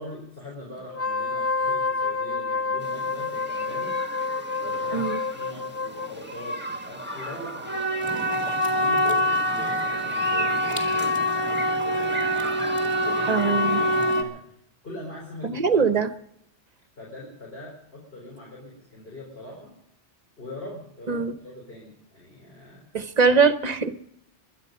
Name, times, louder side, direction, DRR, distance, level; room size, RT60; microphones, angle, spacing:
voice 1, 0.0-4.0 4.6-14.6 14.8-15.8 17.0-19.7 20.4-22.8, left 1 dB, 55° left, -3 dB, 4.5 m, -42 dB
Wind instrument woodwind instrument, 0.9-6.1, left 4 dB, 20° left, 0.4 m, -28 dB
sound 1, 2.8-3.0 3.3-14.2, equal, 10° right, 1.1 m, -26 dB
sound 2, 8.0-14.2, equal, 5° left, 2.2 m, -38 dB
voice 2, 13.3-13.8 15.4-16.1 21.1-21.3 22.9-24.0, right 5 dB, 40° right, 11 dB, 0.9 m, -22 dB
22.0 x 10.5 x 5.3 m, 0.74 s
omnidirectional pair, 1.2 m